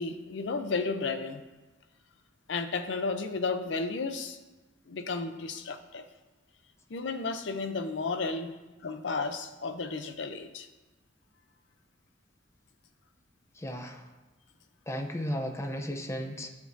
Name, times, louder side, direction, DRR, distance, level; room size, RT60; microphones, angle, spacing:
voice 1, 0.0-1.4 2.5-4.4 4.9-6.0 6.9-8.5 8.8-10.7, left 4 dB, 85° left, 9 dB, 0.6 m, -33 dB
voice 2, 13.5-14.1 14.9-16.5, equal, 15° left, 4 dB, 0.6 m, -35 dB
11.0 x 4.6 x 2.6 m, 1.1 s
head